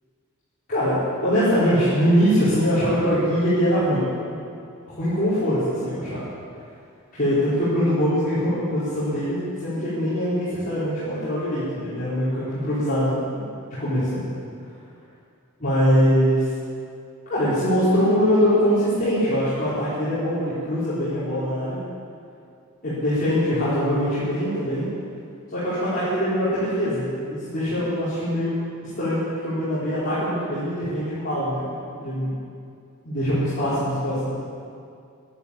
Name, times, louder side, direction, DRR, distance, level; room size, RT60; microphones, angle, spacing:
voice 1, 1.2-4.1 4.9-6.2 7.1-13.4 13.8-14.2 15.6-16.5 17.3-21.8 22.8-24.9 25.5-28.7 29.0-31.7 31.9-32.3 33.0-34.3, equal, 40° left, -14 dB, 4.8 m, -22 dB
13.0 x 11.5 x 8.6 m, 2.4 s
head